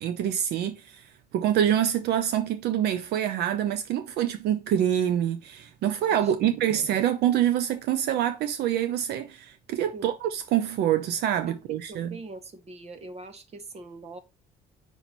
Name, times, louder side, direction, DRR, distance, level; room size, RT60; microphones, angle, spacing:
voice 1, 0.0-1.0 1.3-12.2, right 10 dB, 75° right, 0.6 m, -26 dB
voice 2, 6.1-6.9 9.9-10.1 11.5-11.6 11.9-14.2, right 3 dB, 40° right, 1.1 m, -43 dB
5.7 x 4.5 x 4.0 m
cardioid pair, 110°, 17 cm